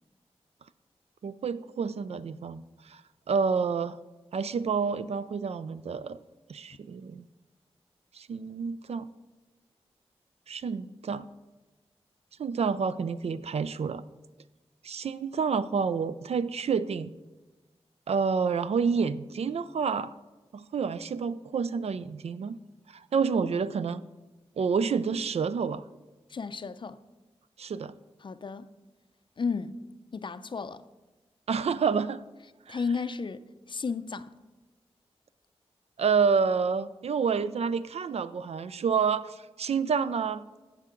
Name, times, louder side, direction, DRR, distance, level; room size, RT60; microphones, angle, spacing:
voice 1, 1.2-3.0 3.3-4.0 4.3-6.2 6.5-7.2 8.1-9.1 10.5-11.3 12.4-14.0 14.8-17.1 18.1-20.1 20.5-22.6 22.9-24.0 24.6-25.8 27.6-27.9 31.5-32.2 32.7-32.8 36.0-40.6, right 5 dB, 75° right, 0.4 m, -29 dB
voice 2, 26.3-27.0 28.2-28.7 29.4-29.8 30.1-30.8 32.7-33.4 33.7-34.4, left 5 dB, 50° left, 0.4 m, -33 dB
11.0 x 7.3 x 3.8 m
wide cardioid pair, 80°, 11 cm